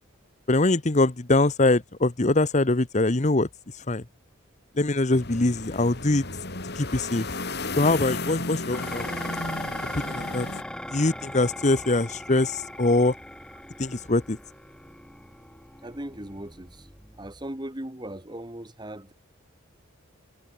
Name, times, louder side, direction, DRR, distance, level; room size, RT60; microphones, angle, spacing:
voice 1, 0.5-3.5 3.9-4.0 4.8-6.2 6.8-7.3 7.8-9.1 9.9-10.5 10.9-13.1 13.8-14.4, left 2 dB, 35° left, 1.0 m, -23 dB
sound 1, 5.1-10.6, left 3 dB, 50° left, 5.1 m, -34 dB
Dishes pots and pans, 8.7-17.5, left 1 dB, 5° left, 5.9 m, -39 dB
voice 2, 15.8-16.9 17.2-19.1, right 1 dB, 20° right, 2.0 m, -38 dB
head